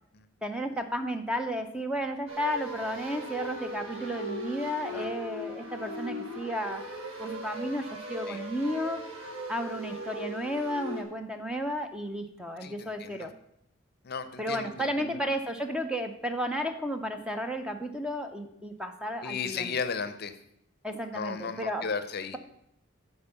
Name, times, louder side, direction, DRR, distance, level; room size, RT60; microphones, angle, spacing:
voice 1, 0.4-6.8 7.2-9.0 9.5-13.3 14.4-19.7 20.8-21.9, equal, 5° right, 6 dB, 0.5 m, -33 dB
sound 1, 2.3-11.0, equal, 80° right, 1.6 m, -39 dB
voice 2, 12.6-13.3 14.0-15.2 19.2-20.4 21.1-22.4, left 5 dB, 50° left, 11 dB, 0.6 m, -35 dB
9.0 x 4.5 x 6.9 m, 0.75 s
head